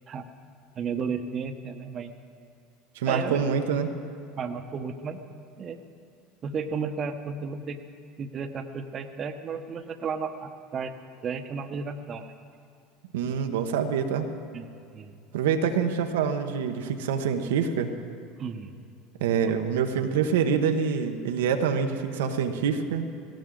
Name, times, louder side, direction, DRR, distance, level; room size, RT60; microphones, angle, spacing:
voice 1, 0.7-2.1 3.1-3.6 4.4-5.2 5.6-5.8 6.4-7.8 8.2-10.9 11.2-12.3 14.5-14.7 14.9-15.2 18.4-18.7, right 5 dB, 40° right, 9 dB, 1.2 m, -33 dB
voice 2, 2.9-3.9 13.1-14.3 15.3-17.9 19.2-23.1, right 7 dB, 75° right, 7 dB, 1.1 m, -26 dB
18.0 x 18.0 x 3.9 m, 2.4 s
hypercardioid pair, 75°, 0 cm